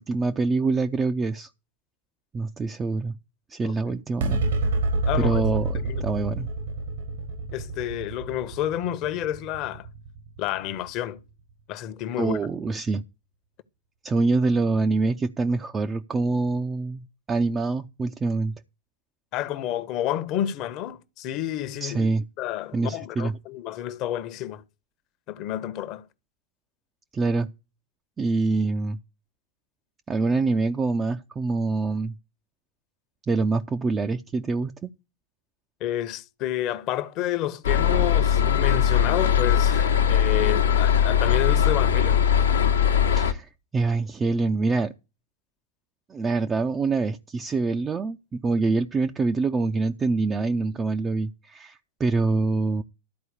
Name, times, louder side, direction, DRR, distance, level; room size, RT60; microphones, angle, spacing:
voice 1, 0.0-1.5 2.3-3.2 3.5-4.5 5.1-6.5 12.2-13.0 14.0-18.5 21.8-22.2 22.7-23.3 27.1-27.5 28.2-29.0 30.1-32.2 33.3-34.9 43.1-44.9 46.1-52.8, right 3 dB, 20° right, 0.5 m, -25 dB
voice 2, 3.6-3.9 5.1-5.4 5.8-6.0 7.5-9.9 10.4-11.2 11.7-12.4 19.3-22.0 22.4-24.6 25.3-26.0 35.8-42.3, left 12 dB, 40° left, 0.9 m, -30 dB
sound 1, 4.2-10.9, right 2 dB, 60° right, 1.3 m, -28 dB
sound 2, 37.6-43.3, left 8 dB, 70° left, 1.0 m, -20 dB
12.5 x 4.6 x 8.3 m
figure-of-eight pair, 90°, 0 cm